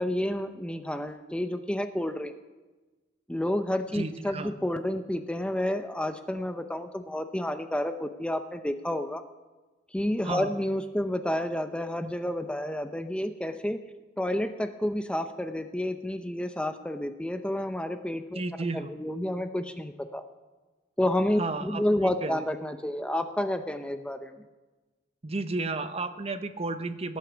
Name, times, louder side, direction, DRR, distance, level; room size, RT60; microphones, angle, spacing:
voice 1, 0.0-2.3 3.3-9.2 9.9-13.8 14.2-18.4 18.7-20.2 21.0-24.4, left 1 dB, 5° left, 8 dB, 0.6 m, -30 dB
voice 2, 3.9-4.5 10.2-10.5 18.3-18.9 21.4-21.8 22.2-22.4 25.2-27.2, right 3 dB, 35° right, 10 dB, 0.8 m, -32 dB
17.5 x 9.4 x 7.0 m, 1.2 s
head